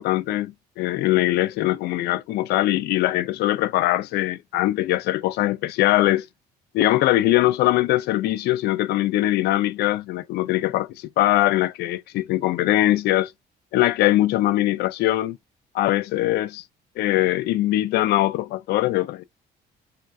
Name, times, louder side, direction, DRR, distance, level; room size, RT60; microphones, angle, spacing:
voice 1, 0.0-6.3 6.7-13.3 13.7-15.4 15.7-16.6 17.0-19.2, left 15 dB, 75° left, 0.4 m, -21 dB
4.1 x 2.4 x 2.3 m
cardioid pair, 110°, 17 cm